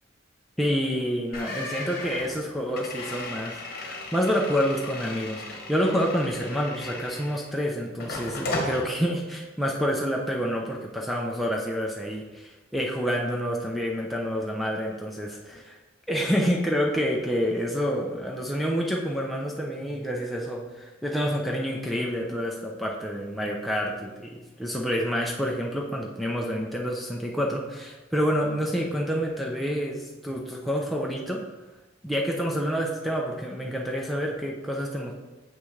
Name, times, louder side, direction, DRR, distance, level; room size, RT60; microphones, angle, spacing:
voice 1, 0.6-15.8 16.1-31.4 32.0-35.1, equal, ahead, -2 dB, 0.6 m, -28 dB
sound 1, 1.3-7.6 8.0-8.8, left 2 dB, 50° left, 1.2 m, -35 dB
7.2 x 6.0 x 3.2 m, 1.1 s
head